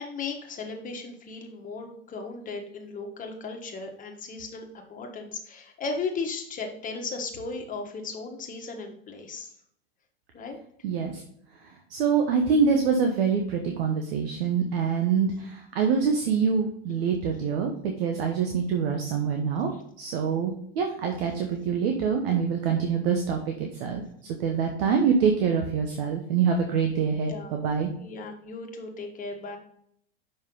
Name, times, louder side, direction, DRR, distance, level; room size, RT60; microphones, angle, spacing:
voice 1, 0.0-9.5 10.3-10.6 27.2-27.6 28.0-29.6, left 4 dB, 25° left, 3 dB, 1.4 m, -36 dB
voice 2, 10.8-11.2 11.9-19.7 20.0-27.9, right 6 dB, 70° right, 3 dB, 1.2 m, -25 dB
6.3 x 5.6 x 3.9 m, 0.67 s
supercardioid pair, 120°, 31 cm